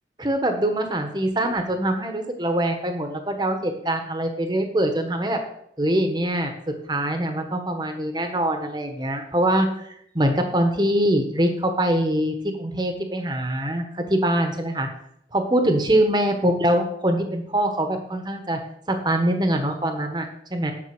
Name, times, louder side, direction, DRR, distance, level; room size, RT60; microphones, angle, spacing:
voice 1, 0.2-5.4 5.8-6.5 6.9-14.9 15.3-18.6 18.9-20.7, right 1 dB, 25° right, 6 dB, 1.2 m, -23 dB
9.7 x 5.9 x 6.1 m, 0.73 s
head